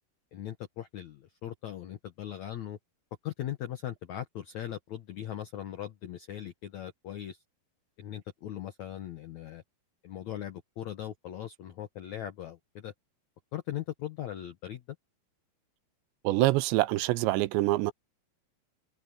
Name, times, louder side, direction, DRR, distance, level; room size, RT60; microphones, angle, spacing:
voice 1, 0.3-2.8 3.2-7.4 8.0-9.6 10.0-12.9 13.5-15.0, left 11 dB, 75° left, 1.6 m, -39 dB
voice 2, 16.2-17.9, right 18 dB, 85° right, 3.0 m, -25 dB
omnidirectional pair, 5.0 m